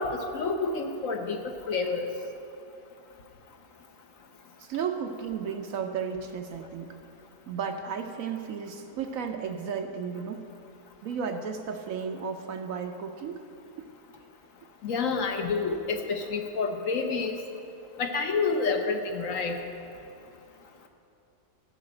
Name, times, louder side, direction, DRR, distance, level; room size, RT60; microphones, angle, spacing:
voice 1, 0.0-1.4 1.7-2.0 14.8-17.4 18.0-19.6, left 4 dB, 60° left, 5 dB, 1.1 m, -28 dB
voice 2, 4.6-7.0 7.5-10.4 11.0-13.4, right 6 dB, 65° right, 6 dB, 0.9 m, -34 dB
14.0 x 5.2 x 7.6 m, 2.6 s
omnidirectional pair, 1.7 m